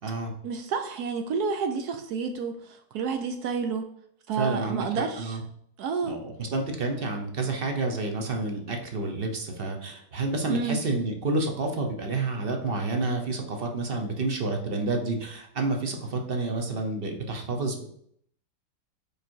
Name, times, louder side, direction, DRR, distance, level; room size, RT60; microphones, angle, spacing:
voice 1, 0.4-3.8 4.3-5.4 5.8-6.1 10.5-10.8, right 5 dB, 70° right, 6 dB, 1.1 m, -30 dB
voice 2, 4.3-5.4 6.1-17.8, right 3 dB, 40° right, 3 dB, 0.9 m, -29 dB
5.2 x 4.7 x 4.5 m, 0.67 s
omnidirectional pair, 1.9 m